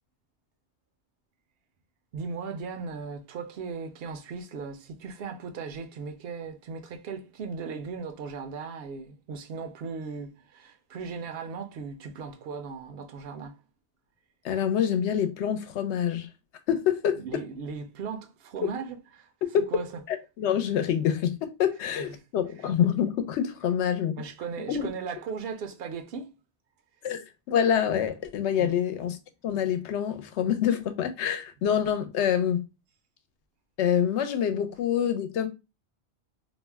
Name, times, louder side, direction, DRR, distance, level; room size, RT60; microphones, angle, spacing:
voice 1, 2.1-13.6 17.2-19.3 19.7-19.9 22.0-22.2 24.2-26.3 28.6-28.7, right 5 dB, 65° right, 0.7 m, -37 dB
voice 2, 14.4-16.3 16.7-17.2 20.1-24.2 24.7-24.9 27.0-29.2 29.4-32.6 33.8-35.5, left 9 dB, 80° left, 0.8 m, -26 dB
2.5 x 2.1 x 3.3 m
omnidirectional pair, 1.2 m